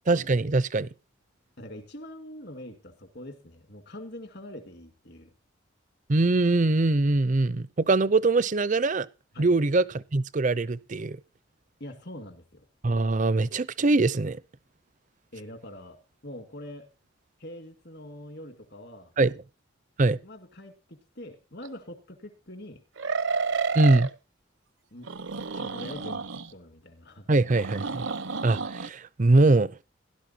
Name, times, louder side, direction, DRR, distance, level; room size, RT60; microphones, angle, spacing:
voice 1, 0.1-0.9 6.1-9.1 9.4-9.8 10.1-11.2 12.8-14.4 19.2-19.3 20.0-20.2 23.7-24.1 27.3-28.1 28.4-29.7, right 2 dB, 40° right, 0.6 m, -22 dB
voice 2, 1.6-5.3 9.3-9.6 11.8-12.7 15.3-16.0 16.2-16.9 17.4-19.1 20.1-22.8 23.8-24.0 24.9-25.1 25.5-27.3, left 1 dB, 55° left, 2.2 m, -44 dB
sound 1, 21.6-21.7 23.0-24.1 25.0-26.5 27.5-28.9, right 5 dB, 70° right, 0.9 m, -31 dB
17.0 x 11.5 x 2.8 m
head